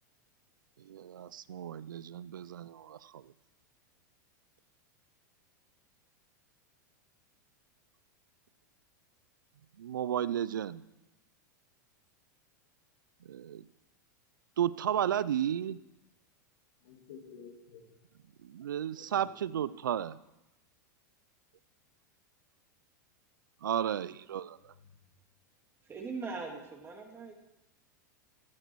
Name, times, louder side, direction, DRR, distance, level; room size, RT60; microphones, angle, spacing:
voice 1, 0.8-3.3 9.8-10.8 13.2-13.7 14.6-15.8 18.4-20.2 23.6-24.7, right 10 dB, 90° right, 18 dB, 0.4 m, -33 dB
voice 2, 16.8-17.9 18.7-19.8, left 6 dB, 70° left, -4 dB, 2.7 m, -52 dB
voice 3, 25.9-27.3, right 4 dB, 25° right, 2 dB, 2.3 m, -40 dB
15.0 x 8.2 x 4.6 m, 0.96 s
hypercardioid pair, 110°, 10 cm